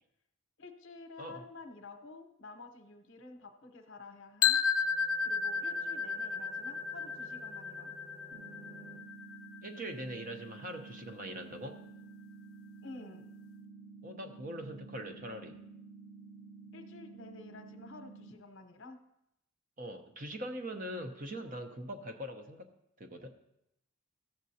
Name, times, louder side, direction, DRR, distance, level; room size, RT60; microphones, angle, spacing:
voice 1, 0.6-4.6 5.2-7.9 12.8-13.3 16.7-19.0, left 3 dB, 60° left, 5 dB, 0.8 m, -50 dB
sound 1, 4.4-10.3, left 6 dB, 80° left, 0.3 m, -33 dB
sound 2, 4.6-9.0, equal, 85° right, 1.0 m, -57 dB
sound 3, 8.3-18.3, right 4 dB, ahead, 0.8 m, -51 dB
voice 2, 9.6-11.8 14.0-15.6 19.8-22.7 23.0-23.3, right 1 dB, 40° right, 7 dB, 0.7 m, -42 dB
14.5 x 7.4 x 2.8 m, 0.82 s
head